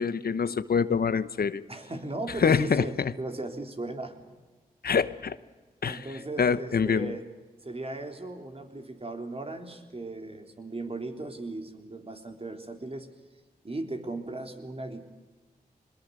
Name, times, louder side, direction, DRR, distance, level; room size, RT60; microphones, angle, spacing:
voice 1, 0.0-1.6 2.4-3.1 4.8-5.4 5.8-6.1 6.4-7.1, left 6 dB, 75° left, 14 dB, 0.9 m, -25 dB
voice 2, 1.7-4.1 5.8-7.2 7.6-13.1 13.6-15.0, right 2 dB, 35° right, 4 dB, 3.7 m, -37 dB
23.0 x 21.0 x 8.3 m, 1.3 s
cardioid pair, 45°, 16 cm